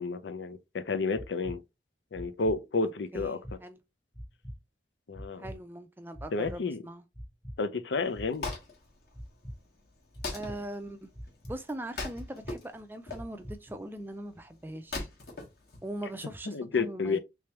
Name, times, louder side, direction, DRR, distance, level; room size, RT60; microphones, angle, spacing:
voice 1, 0.0-1.6 2.1-3.4 5.1-5.5 6.3-6.8 7.6-8.5 16.5-17.2, left 4 dB, 85° left, 0.6 m, -31 dB
sound 1, 1.1-1.6 2.1-2.6 3.1-3.6 4.1-4.6 5.1-5.6 6.1-6.6 7.1-7.6 8.1-8.6 9.1-9.6 10.1-10.6 11.1-11.6 12.1-12.6 13.1-13.6, equal, 20° left, 0.9 m, -42 dB
voice 2, 3.1-3.8 5.4-7.1 10.3-11.1 11.5-15.1 15.8-17.2, right 1 dB, 10° right, 0.4 m, -41 dB
Wood, 8.0-16.4, left 3 dB, 60° left, 1.4 m, -42 dB
3.4 x 3.3 x 3.0 m
head